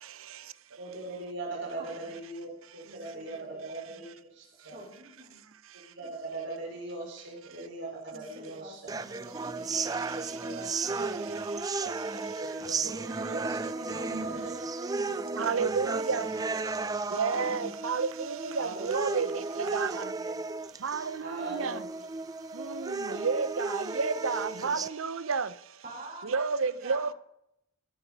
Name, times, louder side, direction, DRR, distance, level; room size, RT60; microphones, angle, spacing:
voice 1, 0.8-4.8 5.9-9.0 9.6-9.9 10.4-10.5 11.7-14.9 15.3-15.4 17.3-17.5 18.6-19.8 20.2-20.4 21.2-22.0, right 2 dB, 60° right, 5.1 m, -41 dB
voice 2, 1.8-2.1 2.8-4.1 4.5-5.4 8.1-11.5 13.4-14.4 14.9-16.9 21.0-21.1 25.8-27.1, right 1 dB, 45° right, 5.3 m, -48 dB
sound 1, 8.9-24.9, right 3 dB, 20° right, 0.4 m, -34 dB
voice 3, 13.9-14.2 15.4-16.3 17.1-20.1 20.8-21.8 22.5-25.5 26.2-27.1, right 5 dB, 75° right, 0.8 m, -31 dB
17.5 x 9.0 x 5.4 m
head